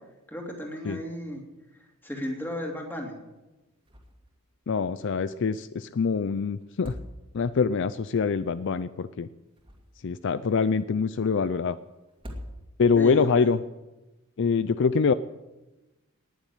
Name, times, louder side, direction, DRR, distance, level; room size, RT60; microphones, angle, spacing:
voice 1, 0.3-1.4 2.0-3.2 13.0-13.5, equal, 10° left, 1 dB, 2.9 m, -34 dB
sound 1, 3.8-4.4 4.6-4.7 6.6-7.6 9.3-10.2 12.1-13.0, equal, 25° right, 2.4 m, -43 dB
voice 2, 4.7-6.9 7.3-9.3 10.0-11.8 12.8-13.6 14.4-15.1, left 5 dB, 55° left, 14 dB, 0.4 m, -24 dB
19.0 x 7.2 x 9.2 m, 1.1 s
head